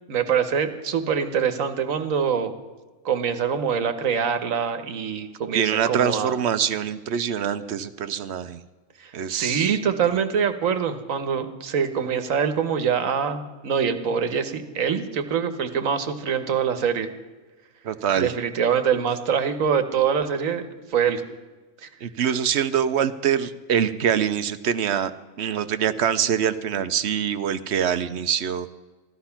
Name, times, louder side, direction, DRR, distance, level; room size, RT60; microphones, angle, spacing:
voice 1, 0.1-2.5 3.0-6.4 9.0-17.1 18.2-21.2 21.8-21.9, right 7 dB, 75° right, 9 dB, 1.4 m, -24 dB
voice 2, 5.5-8.6 9.1-9.8 17.8-18.3 22.0-25.1 25.4-28.7, right 8 dB, 60° right, 12 dB, 0.9 m, -24 dB
15.0 x 12.0 x 5.8 m, 1.3 s
omnidirectional pair, 1.4 m